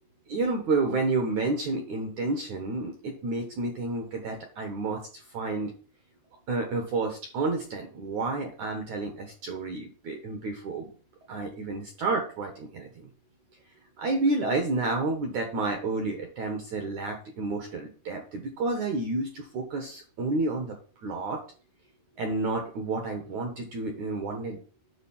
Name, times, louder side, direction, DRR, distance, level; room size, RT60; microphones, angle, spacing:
voice 1, 0.3-5.7 6.5-10.9 11.3-13.1 14.0-20.7 21.0-21.4 22.2-24.6, right 3 dB, 75° right, 4 dB, 1.7 m, -30 dB
10.0 x 4.0 x 7.3 m, 0.40 s
omnidirectional pair, 5.3 m